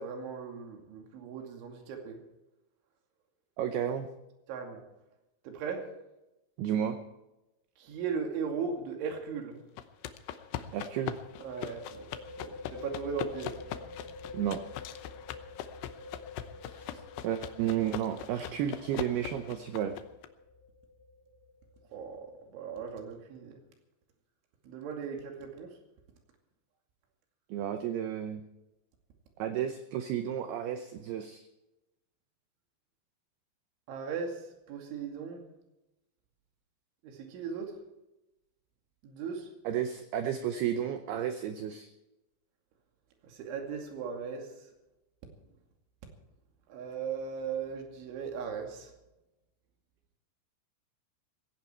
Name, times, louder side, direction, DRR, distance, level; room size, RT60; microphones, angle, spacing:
voice 1, 0.0-2.2 4.5-4.8 5.5-5.8 7.8-9.6 11.4-12.1 12.4-13.5 21.9-22.3 22.5-23.6 24.6-25.7 33.9-34.4 34.7-35.5 37.0-37.7 39.0-39.5 43.3-44.5 46.7-48.9, right 6 dB, 70° right, 3 dB, 4.7 m, -37 dB
voice 2, 3.6-4.1 6.6-7.0 10.7-11.2 14.3-14.6 17.2-20.0 27.5-28.4 29.4-31.4 39.6-41.9, right 9 dB, 90° right, 8 dB, 2.2 m, -32 dB
sound 1, 7.9-8.2 8.4-8.5 11.0-22.4, left 3 dB, 20° left, 2.3 m, -48 dB
sound 2, 9.8-20.3, left 11 dB, 75° left, 2.5 m, -42 dB
17.5 x 16.5 x 4.5 m, 0.96 s
omnidirectional pair, 5.8 m